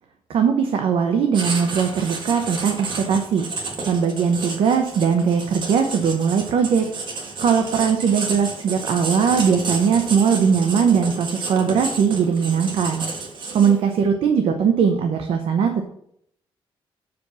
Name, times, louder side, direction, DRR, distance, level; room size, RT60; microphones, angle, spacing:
voice 1, 0.3-3.5 3.9-6.8 7.4-13.0 13.5-15.7, right 6 dB, 70° right, 5 dB, 0.8 m, -20 dB
Writing, 1.3-13.9, right 3 dB, 55° right, 1.8 m, -31 dB
6.9 x 5.1 x 6.0 m, 0.71 s
cardioid pair, 130°, 10 cm